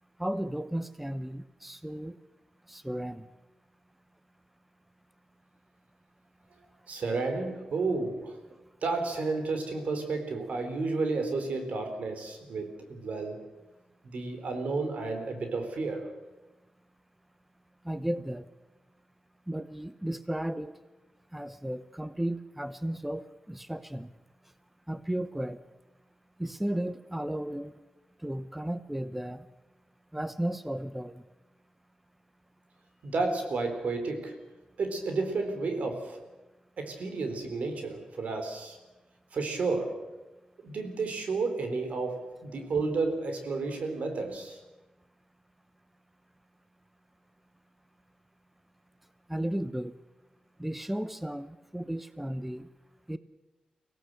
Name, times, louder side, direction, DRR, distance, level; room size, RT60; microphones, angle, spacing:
voice 1, 0.2-2.2 2.7-3.3 17.8-18.5 19.5-20.7 21.3-24.1 24.9-25.6 26.4-27.8 28.2-29.4 30.1-31.2 49.3-49.9 50.6-52.7 53.1-53.2, right 1 dB, 5° right, 12 dB, 0.9 m, -34 dB
voice 2, 6.9-8.4 8.8-13.4 14.0-16.1 33.0-34.4 34.8-36.2 36.8-38.8 39.3-40.0 40.6-44.6, right 3 dB, 80° right, 6 dB, 4.2 m, -32 dB
24.5 x 17.5 x 8.0 m, 1.1 s
wide cardioid pair, 95°, 2 cm